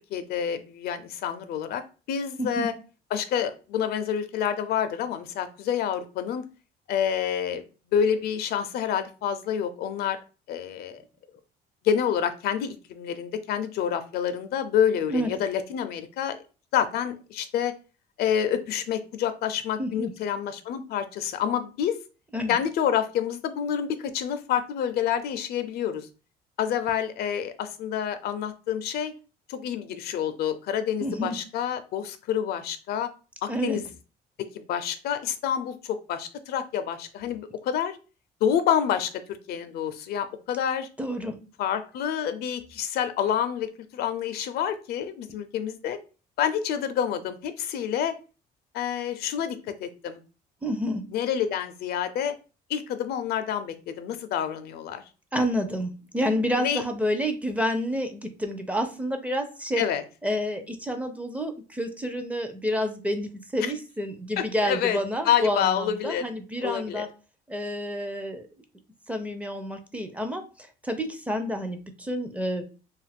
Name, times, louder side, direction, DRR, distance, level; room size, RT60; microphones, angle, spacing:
voice 1, 0.1-1.8 2.1-2.7 3.1-6.4 6.9-7.6 7.9-10.2 10.5-11.0 11.8-16.4 16.7-17.7 18.2-22.0 22.5-26.1 26.6-29.1 29.5-33.1 33.4-33.8 34.4-38.0 38.4-39.2 39.5-40.9 41.6-46.0 46.4-48.2 48.7-50.2 51.1-52.3 52.7-55.0 56.6-56.8 59.8-60.0 63.6-63.7 64.4-65.0 65.2-66.3 66.6-67.1, left 9 dB, 70° left, 10 dB, 0.4 m, -28 dB
voice 2, 19.8-20.1 22.3-22.6 31.0-31.3 33.5-33.8 41.0-41.4 50.6-51.0 55.3-59.8 60.2-67.1 67.5-68.5 69.1-72.6, equal, 10° right, 7 dB, 0.4 m, -29 dB
2.6 x 2.4 x 3.3 m, 0.34 s
cardioid pair, 110°, 17 cm